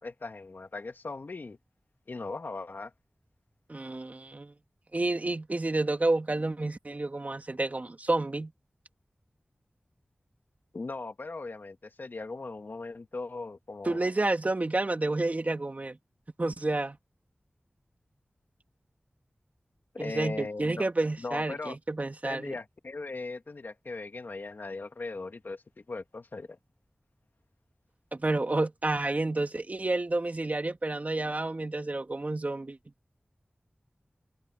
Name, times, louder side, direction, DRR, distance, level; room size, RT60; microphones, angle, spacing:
voice 1, 0.0-1.6 2.1-2.9 10.7-14.0 19.9-20.9 21.2-21.8 22.2-26.6, left 3 dB, 70° left, 2.7 m, -39 dB
voice 2, 3.7-4.5 4.9-8.5 13.8-16.0 16.4-17.0 20.0-22.6 28.1-32.8, right 2 dB, 45° right, 2.8 m, -30 dB
cardioid pair, 45°, 3 cm